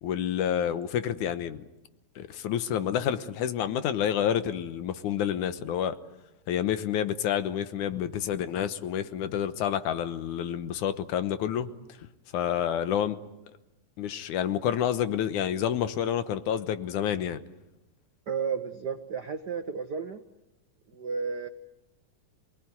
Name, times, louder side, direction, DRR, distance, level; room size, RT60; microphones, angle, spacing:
voice 1, 0.0-1.7 2.2-6.0 6.5-11.7 12.0-12.1 12.3-13.2 14.0-17.4, left 9 dB, 85° left, 11 dB, 2.6 m, -29 dB
voice 2, 18.3-20.2 20.9-21.5, right 6 dB, 70° right, 7 dB, 0.9 m, -32 dB
27.5 x 19.5 x 9.5 m, 0.98 s
omnidirectional pair, 3.5 m